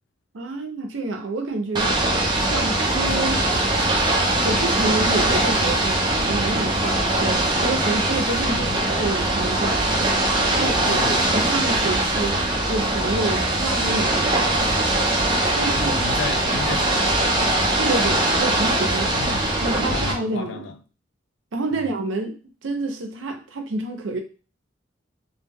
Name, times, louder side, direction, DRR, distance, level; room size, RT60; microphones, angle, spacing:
voice 1, 0.3-2.0 2.5-3.5 4.4-10.2 10.6-12.4 12.7-14.6 15.6-16.0 17.8-19.2 19.6-20.7 21.5-22.4 22.6-24.2, right 2 dB, 85° right, 0.6 m, -28 dB
Ocean / Boat Water vehicle, 1.7-20.1, right 1 dB, 25° right, 0.5 m, -21 dB
voice 2, 8.5-8.9 10.8-11.2 15.6-17.3 19.1-19.5 19.9-20.8 21.7-21.8, left 5 dB, 75° left, 0.4 m, -34 dB
2.2 x 2.1 x 3.4 m
head